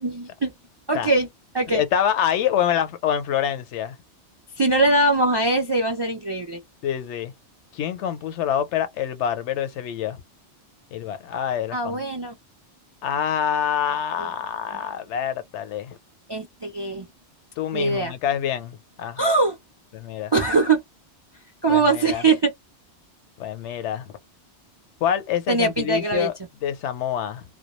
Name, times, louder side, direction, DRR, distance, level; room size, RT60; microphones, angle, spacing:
voice 1, 0.0-0.5 0.9-1.3 1.5-1.8 4.6-6.6 11.7-12.3 16.3-17.1 17.7-18.1 19.2-19.6 20.3-20.8 21.6-22.5 25.5-26.3, right 3 dB, 45° right, 0.3 m, -21 dB
voice 2, 1.7-4.0 6.8-7.3 7.7-10.2 10.9-12.0 13.0-16.0 17.6-19.2 19.9-20.3 21.7-22.2 23.4-24.1 25.0-26.3 26.6-27.4, left 9 dB, 80° left, 0.9 m, -26 dB
2.2 x 2.1 x 2.9 m
omnidirectional pair, 1.2 m